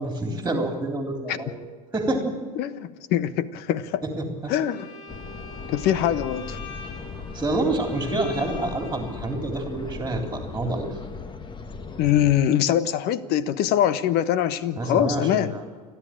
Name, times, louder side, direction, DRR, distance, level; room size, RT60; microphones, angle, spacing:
voice 1, 0.0-1.6 1.9-2.3 4.0-4.5 7.3-10.9 14.8-15.6, right 2 dB, 10° right, 3 dB, 3.5 m, -27 dB
voice 2, 2.6-4.0 4.5-4.9 5.7-6.6 12.0-15.5, left 11 dB, 50° left, 15 dB, 1.2 m, -23 dB
Bowed string instrument, 4.7-9.4, left 4 dB, 90° left, 3.3 m, -43 dB
sound 1, 5.1-12.4, left 4 dB, 25° left, 1.5 m, -38 dB
29.0 x 11.0 x 8.8 m, 1.5 s
hypercardioid pair, 80°, 20 cm